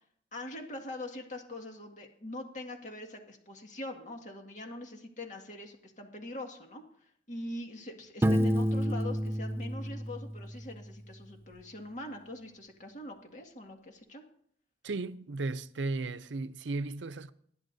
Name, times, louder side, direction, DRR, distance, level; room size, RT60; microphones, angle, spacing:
voice 1, 0.3-14.2, left 1 dB, 45° left, 2.0 m, -43 dB
Piano, 8.2-11.0, equal, 15° right, 0.4 m, -29 dB
voice 2, 14.8-17.3, right 3 dB, 80° right, 0.6 m, -35 dB
20.5 x 12.5 x 2.7 m
head